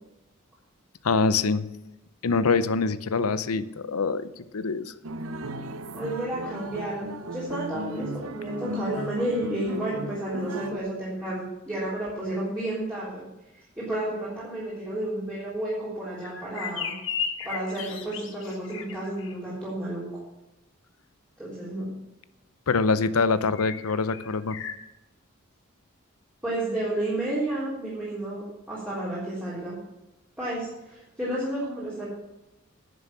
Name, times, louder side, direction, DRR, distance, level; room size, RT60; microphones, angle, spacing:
voice 1, 1.0-1.7 2.2-4.9 22.7-24.6, left 4 dB, 90° left, 15 dB, 0.7 m, -24 dB
sound 1, 5.0-10.8, right 1 dB, 75° right, 0.7 m, -36 dB
voice 2, 5.9-13.3 13.6-16.9 17.4-20.1 21.4-21.9 26.4-29.8 30.4-32.1, right 1 dB, 10° right, -10 dB, 3.8 m, -31 dB
sound 2, 16.2-19.3 23.5-24.7, left 7 dB, 60° left, 1.3 m, -35 dB
10.5 x 7.2 x 7.3 m, 0.96 s
head